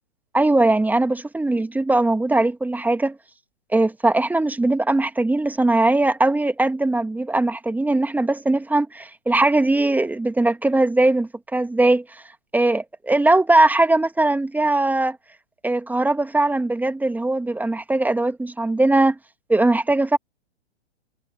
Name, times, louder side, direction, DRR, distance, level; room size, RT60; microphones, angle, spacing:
voice 1, 0.3-3.2 3.7-12.2 12.5-15.2 15.6-19.2 19.5-20.2, right 2 dB, 5° right, 1.9 m, -20 dB
figure-of-eight pair, 110°, 34 cm